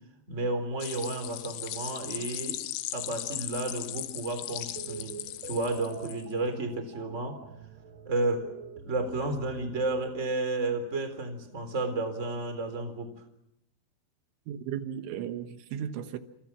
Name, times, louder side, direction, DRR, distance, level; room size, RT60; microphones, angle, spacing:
voice 1, 0.3-2.6 2.9-5.2 5.4-7.4 8.0-8.5 8.8-13.1, right 2 dB, 15° right, 3.3 m, -32 dB
sound 1, 0.8-6.3, left 15 dB, 90° left, 3.7 m, -38 dB
sound 2, 4.8-10.1, right 6 dB, 50° right, 2.2 m, -46 dB
voice 2, 14.5-16.2, right 9 dB, 80° right, 3.6 m, -35 dB
28.5 x 27.5 x 6.0 m
omnidirectional pair, 5.5 m